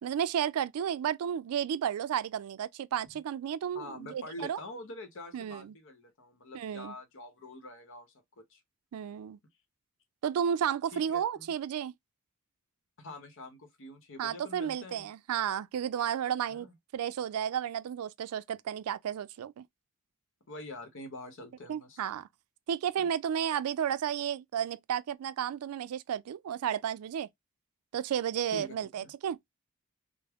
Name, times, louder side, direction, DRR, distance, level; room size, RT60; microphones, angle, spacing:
voice 1, 0.0-4.6 5.3-5.7 6.5-6.9 8.9-9.4 10.2-11.9 14.2-16.7 16.9-19.7 21.7-22.3 22.7-27.3 27.9-29.4, right 9 dB, 80° right, 0.3 m, -32 dB
voice 2, 3.7-8.1 8.5-8.6 10.9-11.5 13.0-15.1 16.5-16.7 20.5-22.0 23.0-23.1 28.5-29.1, left 1 dB, 60° left, 0.8 m, -45 dB
3.4 x 2.0 x 3.4 m
head